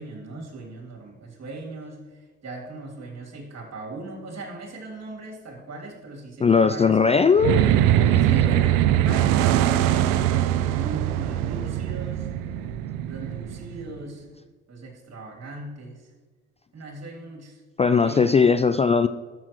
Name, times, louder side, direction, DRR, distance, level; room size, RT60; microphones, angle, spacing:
voice 1, 0.0-7.2 8.2-12.3 13.1-14.2 14.7-16.1 16.7-17.6 18.0-18.4, right 2 dB, 50° right, 0 dB, 3.2 m, -39 dB
voice 2, 6.4-7.6 17.8-19.1, left 5 dB, 20° left, 11 dB, 0.4 m, -18 dB
sound 1, 7.4-14.0, right 11 dB, 70° right, 0.6 m, -22 dB
12.5 x 6.9 x 3.2 m, 1.4 s
hypercardioid pair, 50°, 34 cm